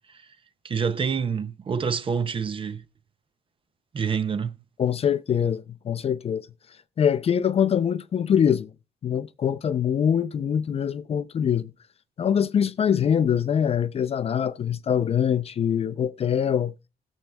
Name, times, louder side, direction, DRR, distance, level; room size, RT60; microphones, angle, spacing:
voice 1, 0.6-2.8 3.9-4.5, right 6 dB, 30° right, 0.5 m, -27 dB
voice 2, 4.8-6.5 7.0-8.7 9.0-11.7 12.2-16.7, left 8 dB, 35° left, 0.4 m, -23 dB
20.0 x 7.2 x 2.2 m
cardioid pair, 150°, 18 cm